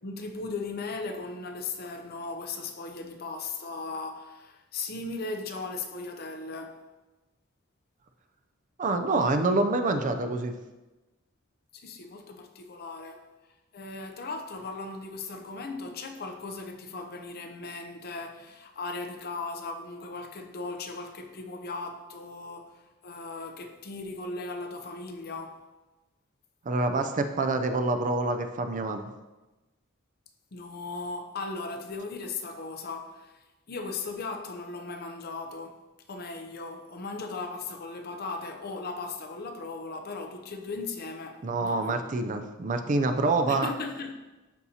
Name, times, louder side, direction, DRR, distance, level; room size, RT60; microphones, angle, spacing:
voice 1, 0.0-6.8 11.7-13.2 13.7-25.6 26.9-27.0 30.5-35.8 36.1-42.2 43.5-44.2, left 3 dB, 50° left, 0.6 m, -37 dB
voice 2, 8.8-10.5 26.7-29.1 41.4-43.7, right 2 dB, 40° right, 0.5 m, -26 dB
11.5 x 4.1 x 2.8 m
head